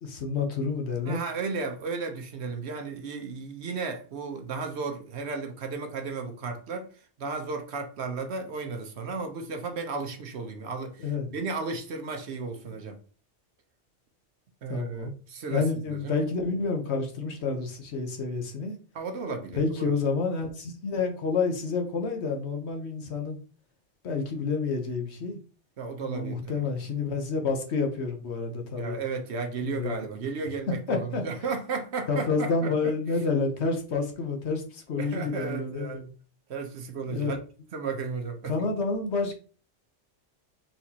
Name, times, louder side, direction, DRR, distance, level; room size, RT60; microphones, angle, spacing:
voice 1, 0.0-1.2 11.0-11.3 14.7-15.1 15.5-18.8 19.5-23.4 24.0-25.4 26.0-29.0 29.6-30.0 30.9-31.2 32.1-36.1 37.1-37.3 38.5-39.3, left 4 dB, 65° left, 1.2 m, -29 dB
voice 2, 1.0-6.9 7.2-13.0 14.6-16.2 18.9-19.6 19.9-20.0 25.8-26.6 28.8-32.9 35.0-36.0 36.5-37.4 37.7-38.7, right 4 dB, 65° right, 1.0 m, -34 dB
4.4 x 3.7 x 2.8 m
omnidirectional pair, 1.2 m